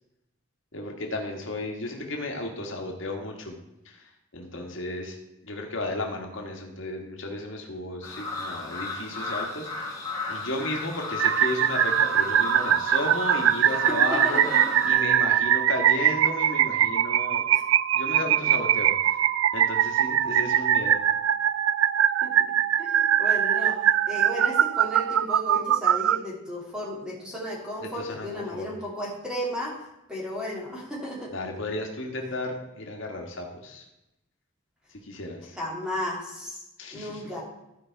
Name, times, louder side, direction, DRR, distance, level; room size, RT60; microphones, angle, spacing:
voice 1, 0.7-3.6 3.8-4.0 4.3-5.2 5.4-9.9 10.3-14.5 14.8-17.4 17.9-19.2 19.5-21.0 27.9-28.7 31.3-33.8 35.0-35.6 36.8-37.2, left 2 dB, 75° left, 2 dB, 1.5 m, -34 dB
sound 1, 8.0-14.9, left 3 dB, 20° left, 2.0 m, -34 dB
sound 2, 11.2-26.2, right 10 dB, 80° right, 0.3 m, -22 dB
voice 2, 13.9-15.2 17.5-17.6 20.3-20.4 22.2-22.3 22.8-29.7 30.1-31.3 35.6-36.6 36.9-37.4, left 1 dB, 5° right, -4 dB, 2.6 m, -34 dB
14.0 x 4.9 x 4.5 m, 0.91 s
head